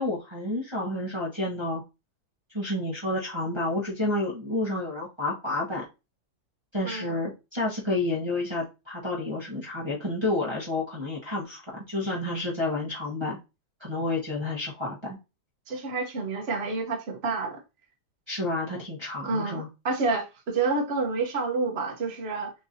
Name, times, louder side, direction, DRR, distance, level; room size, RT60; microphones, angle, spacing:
voice 1, 0.0-1.8 2.5-5.8 6.7-13.4 13.8-15.2 18.3-19.7, left 2 dB, 20° right, 1.1 m, -30 dB
voice 2, 6.8-7.3 15.7-17.6 19.2-22.5, right 4 dB, 45° right, 1.1 m, -29 dB
6.6 x 3.0 x 2.7 m
omnidirectional pair, 1.8 m